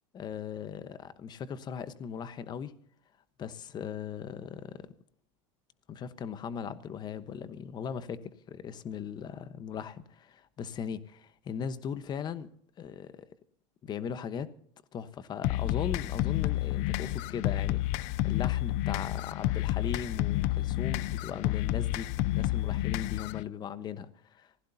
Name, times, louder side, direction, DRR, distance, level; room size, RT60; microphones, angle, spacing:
voice 1, 0.1-2.7 3.4-4.9 5.9-12.5 12.8-13.3 13.8-14.5 14.9-24.5, left 7 dB, 30° left, 1.1 m, -38 dB
sound 1, 15.4-23.4, left 15 dB, 50° left, 0.5 m, -30 dB
25.0 x 16.5 x 2.8 m
supercardioid pair, 140°, 15 cm